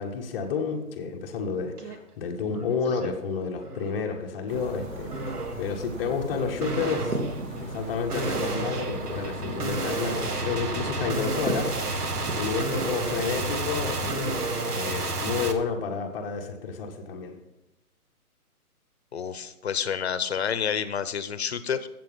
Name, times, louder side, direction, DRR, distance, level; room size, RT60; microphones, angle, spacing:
voice 1, 0.0-7.2 7.5-11.7 12.3-14.4 14.7-17.4, left 5 dB, 10° left, -5 dB, 0.8 m, -30 dB
sound 1, 1.8-2.0 2.4-3.1 3.6-4.0 5.1-5.7 6.6-15.5, right 2 dB, 85° right, 1.7 m, -31 dB
sound 2, 4.5-14.5, right 2 dB, 60° right, 2.7 m, -37 dB
voice 2, 19.1-21.9, left 7 dB, 45° left, 13 dB, 0.8 m, -29 dB
14.5 x 7.6 x 5.4 m, 0.92 s
hypercardioid pair, 150°, 45 cm